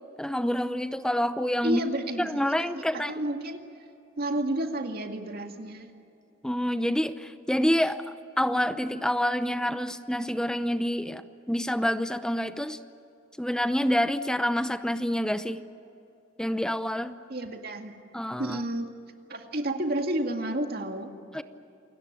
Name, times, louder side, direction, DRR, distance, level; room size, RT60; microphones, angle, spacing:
voice 1, 0.2-1.8 2.2-3.1 6.4-12.8 13.4-15.6 16.4-17.2 18.1-18.6 21.3-21.4, equal, 5° left, 11 dB, 0.7 m, -27 dB
voice 2, 1.6-3.7 4.2-5.9 17.3-17.9 18.4-18.9 19.3-21.1, right 1 dB, 50° right, 4 dB, 2.2 m, -31 dB
28.5 x 18.0 x 9.0 m, 2.7 s
head